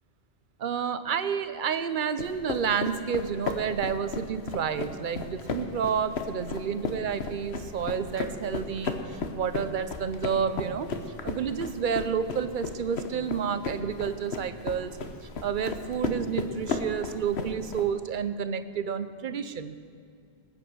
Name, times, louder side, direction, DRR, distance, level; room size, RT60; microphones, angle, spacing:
voice 1, 0.6-10.9 11.2-14.9 15.4-19.8, right 7 dB, 50° right, 11 dB, 0.8 m, -30 dB
sound 1, 2.2-17.9, left 4 dB, 70° left, 1.3 m, -35 dB
19.5 x 8.7 x 6.2 m, 2.3 s
omnidirectional pair, 1.1 m